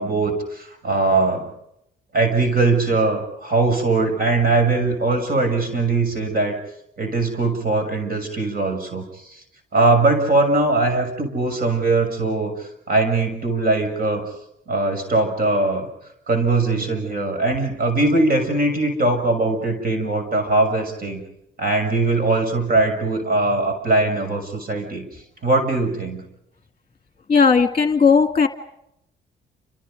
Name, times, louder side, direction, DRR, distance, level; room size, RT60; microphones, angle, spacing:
voice 1, 0.0-1.5 2.1-6.6 7.0-9.4 9.7-14.3 14.7-15.9 16.3-21.2 21.6-25.0 25.4-26.2, right 2 dB, 50° right, 6 dB, 6.7 m, -21 dB
voice 2, 27.3-28.5, left 5 dB, 30° left, 7 dB, 2.1 m, -16 dB
29.5 x 27.0 x 5.3 m, 0.79 s
cardioid pair, 90°, 20 cm